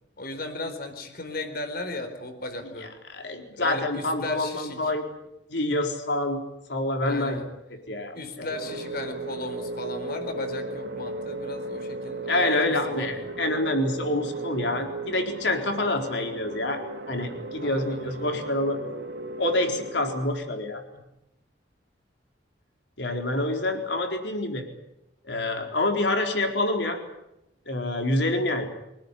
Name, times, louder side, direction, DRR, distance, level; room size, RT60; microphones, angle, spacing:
voice 1, 0.2-2.9 3.5-4.9 7.0-7.5 8.2-13.3 17.6-18.4 20.9-21.0, left 2 dB, 55° left, 7 dB, 4.3 m, -36 dB
voice 2, 2.8-5.0 5.5-6.4 6.7-7.4 7.9-8.5 12.3-16.8 17.1-18.8 19.4-20.8 23.0-24.6 25.2-27.0 27.7-28.7, left 1 dB, 75° left, 4 dB, 4.2 m, -27 dB
sound 1, 8.5-20.3, right 2 dB, 85° right, 3.2 m, -36 dB
25.5 x 18.0 x 10.0 m, 0.88 s
head